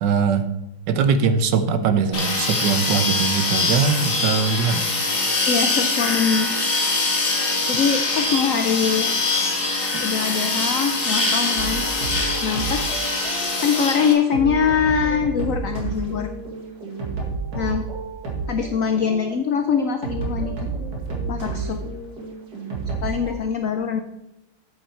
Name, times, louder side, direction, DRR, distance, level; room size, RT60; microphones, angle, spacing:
voice 1, 0.0-0.5 0.9-4.9, right 6 dB, 70° right, 10 dB, 1.2 m, -21 dB
sound 1, 2.1-14.1, left 3 dB, 35° left, 1.8 m, -23 dB
voice 2, 5.5-6.5 7.7-9.2 10.0-11.9 12.4-16.3 17.5-17.8 18.5-20.7 21.3-21.8 23.0-24.0, left 6 dB, 75° left, 7 dB, 0.7 m, -23 dB
sound 2, 11.6-23.3, right 4 dB, 50° right, 2.4 m, -31 dB
8.3 x 8.1 x 4.4 m, 0.95 s
omnidirectional pair, 2.2 m